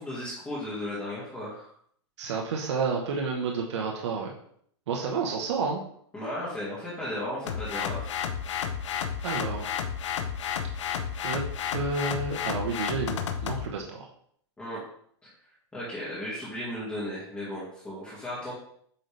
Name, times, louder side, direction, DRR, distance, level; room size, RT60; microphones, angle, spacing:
voice 1, 0.0-1.7 6.1-8.1 14.6-14.8 15.2-15.3 15.7-18.5, left 1 dB, 5° left, -10 dB, 2.0 m, -35 dB
voice 2, 2.2-4.3 4.9-5.8 9.2-9.7 11.2-11.4 11.7-14.1, right 4 dB, 75° right, 0 dB, 1.2 m, -30 dB
sound 1, 7.5-13.7, left 8 dB, 85° left, 0.8 m, -32 dB
8.5 x 4.1 x 3.4 m, 0.64 s
supercardioid pair, 150°, 15 cm